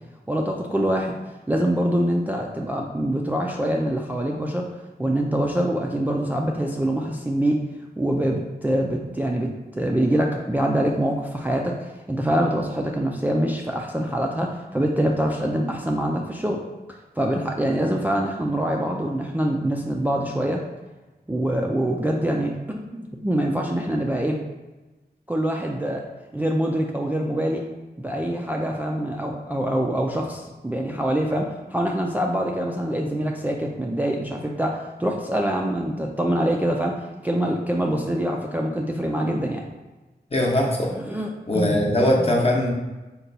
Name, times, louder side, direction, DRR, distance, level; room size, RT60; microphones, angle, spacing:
voice 1, 0.3-1.1 1.5-4.7 5.0-7.6 8.0-16.6 17.2-20.6 21.3-24.4 25.3-26.0 26.3-27.6 28.0-37.0 37.2-39.6 40.9-41.8 42.2-42.3, right 1 dB, 10° right, 0 dB, 0.3 m, -24 dB
voice 2, 40.3-40.9 41.5-42.7, left 1 dB, 35° left, -1 dB, 0.8 m, -20 dB
4.0 x 2.2 x 4.0 m, 1.1 s
wide cardioid pair, 95°, 17 cm